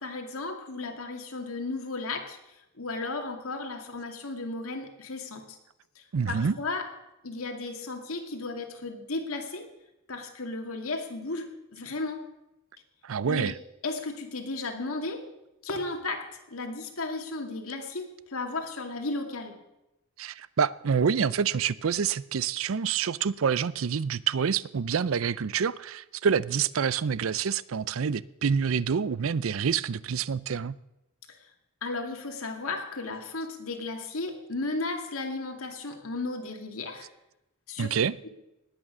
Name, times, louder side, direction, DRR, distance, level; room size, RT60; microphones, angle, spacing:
voice 1, 0.0-2.4 2.8-5.6 6.0-6.9 7.2-9.7 10.1-12.3 13.3-13.5 13.8-15.3 15.6-19.6 31.3-31.4 31.8-37.1 37.7-37.9 38.2-38.3, left 3 dB, 85° left, 2.2 m, -34 dB
voice 2, 6.1-6.6 13.0-13.6 20.2-30.7 37.8-38.2, right 6 dB, 70° right, 0.5 m, -27 dB
19.0 x 9.0 x 6.1 m
head